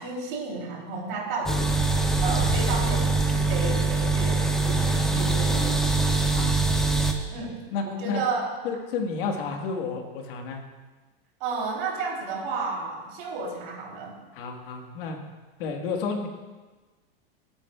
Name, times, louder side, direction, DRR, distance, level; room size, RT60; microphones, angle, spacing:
voice 1, 0.0-1.8 2.2-6.0 7.3-7.6 7.8-8.5 11.4-14.2, right 3 dB, 60° right, -2 dB, 3.4 m, -32 dB
sound 1, 1.5-7.1, right 3 dB, ahead, 0.5 m, -23 dB
voice 2, 7.3-8.3 8.6-10.6 14.3-15.2 15.6-16.3, left 4 dB, 65° left, 3 dB, 1.7 m, -31 dB
15.5 x 8.8 x 2.4 m, 1.3 s
supercardioid pair, 150°, 30 cm